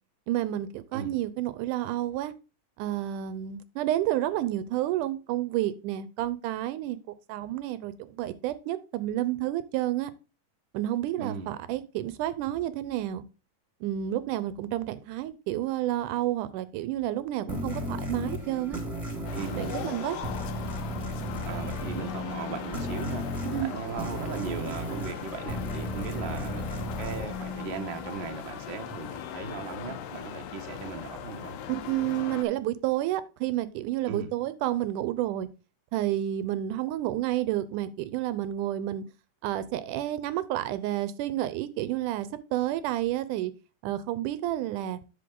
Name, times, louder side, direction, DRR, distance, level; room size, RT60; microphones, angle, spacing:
voice 1, 0.3-2.3 2.8-7.0 7.3-10.1 10.7-13.2 13.8-18.8 19.6-20.2 23.5-23.7 31.7-35.5 35.9-39.0 39.4-43.5 43.8-45.0, right 13 dB, 80° right, 2.1 m, -30 dB
voice 2, 11.2-11.5 19.3-20.0 21.4-23.3 23.6-26.6 27.0-31.6 34.1-34.3, right 6 dB, 65° right, 1.2 m, -38 dB
sound 1, 17.5-28.7, equal, 5° right, 2.1 m, -35 dB
sound 2, 19.3-32.4, left 9 dB, 80° left, 2.2 m, -40 dB
8.5 x 6.5 x 3.8 m
omnidirectional pair, 3.7 m